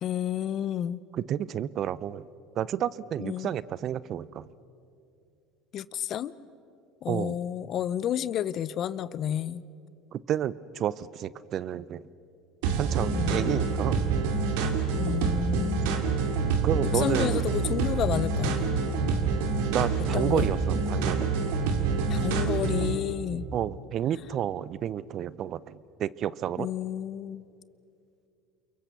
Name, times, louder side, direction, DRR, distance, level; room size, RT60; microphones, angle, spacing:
voice 1, 0.0-1.0 3.2-3.5 5.7-6.3 7.0-9.6 13.1-13.6 14.9-15.9 16.9-18.7 20.1-20.5 22.1-23.5 26.6-27.4, left 10 dB, 50° left, 18 dB, 0.7 m, -31 dB
voice 2, 1.1-2.3 2.6-4.5 7.1-7.4 10.1-12.1 12.8-14.0 16.6-17.4 19.7-21.3 23.5-26.7, right 10 dB, 50° right, 19 dB, 0.7 m, -31 dB
sound 1, 12.6-22.9, right 4 dB, 75° right, 2.6 m, -27 dB
28.5 x 23.0 x 6.9 m, 2.5 s
hypercardioid pair, 80°, 0 cm